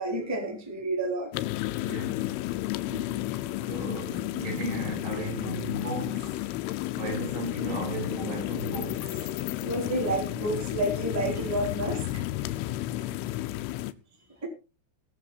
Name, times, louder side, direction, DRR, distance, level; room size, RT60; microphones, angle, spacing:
voice 1, 0.0-1.3 2.9-3.7 9.6-12.0 14.4-14.5, right 1 dB, 5° right, 2.1 m, -30 dB
sound 1, 1.3-13.9, left 16 dB, 80° left, 3.2 m, -32 dB
voice 2, 1.8-2.3 2.9-3.1 3.7-6.5 7.0-9.3 11.3-11.5, right 3 dB, 85° right, 9.4 m, -36 dB
20.5 x 7.3 x 4.3 m
omnidirectional pair, 5.9 m